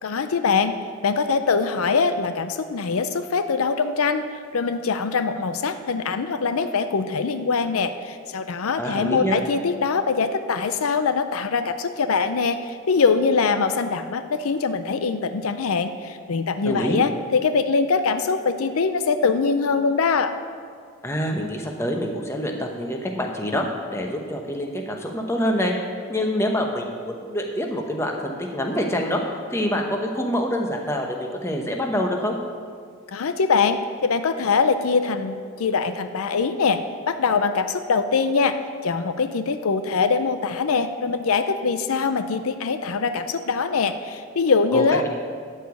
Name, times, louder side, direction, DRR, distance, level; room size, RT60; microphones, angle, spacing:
voice 1, 0.0-0.7 1.0-4.3 4.5-20.3 33.1-36.8 37.1-38.6 38.8-45.1, left 5 dB, 75° left, 10 dB, 0.5 m, -23 dB
voice 2, 8.8-9.4 16.6-17.0 21.0-25.8 26.1-29.2 29.5-32.4 44.7-45.1, equal, 10° left, 2 dB, 0.9 m, -26 dB
12.0 x 4.9 x 8.3 m, 2.1 s
head